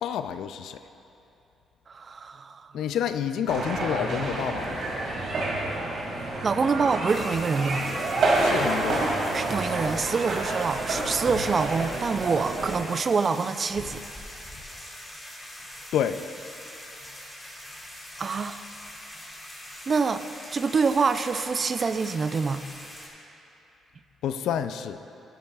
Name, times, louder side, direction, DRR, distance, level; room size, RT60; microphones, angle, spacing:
voice 1, 0.0-0.8 2.7-4.8 8.4-9.1 15.9-16.2 24.2-25.0, left 9 dB, 80° left, 10 dB, 0.4 m, -29 dB
voice 2, 1.9-2.7 6.4-7.9 9.3-14.0 18.2-18.6 19.9-22.6, right 5 dB, 40° right, 11 dB, 0.4 m, -26 dB
sound 1, 3.5-12.8, right 2 dB, 70° right, 2.4 m, -28 dB
sound 2, 7.1-23.1, left 1 dB, 15° left, 2.3 m, -43 dB
14.0 x 11.5 x 2.4 m, 2.9 s
cardioid pair, 90°, 0 cm